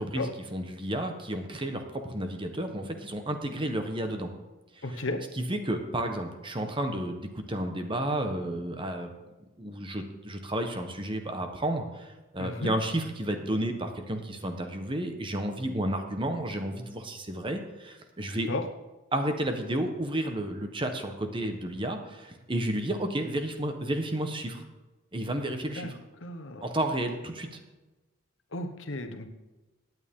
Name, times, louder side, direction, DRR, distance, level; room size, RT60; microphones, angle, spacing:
voice 1, 0.0-4.3 4.8-5.0 5.3-9.1 9.6-18.5 19.1-24.6 25.1-26.0 26.6-27.6, right 1 dB, 25° right, 5 dB, 1.2 m, -32 dB
voice 2, 4.8-5.2 12.4-12.7 18.5-18.6 25.8-25.9 26.2-26.7 28.5-29.3, left 2 dB, 65° left, 6 dB, 1.1 m, -34 dB
17.0 x 9.4 x 3.7 m, 1.1 s
head